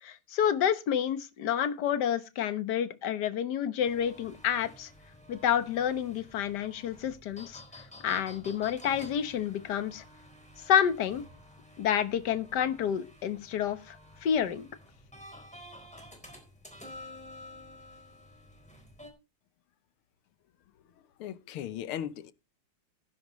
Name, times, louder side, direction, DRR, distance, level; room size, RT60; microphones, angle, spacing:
voice 1, 0.0-4.9 5.3-7.6 8.0-10.0 10.6-11.2 11.8-14.0 14.2-14.7, left 9 dB, 55° left, 1.6 m, -29 dB
sound 1, 3.8-19.1, left 1 dB, 5° left, 3.8 m, -51 dB
voice 2, 21.2-22.3, left 10 dB, 85° left, 1.8 m, -37 dB
16.5 x 10.5 x 3.1 m
omnidirectional pair, 2.3 m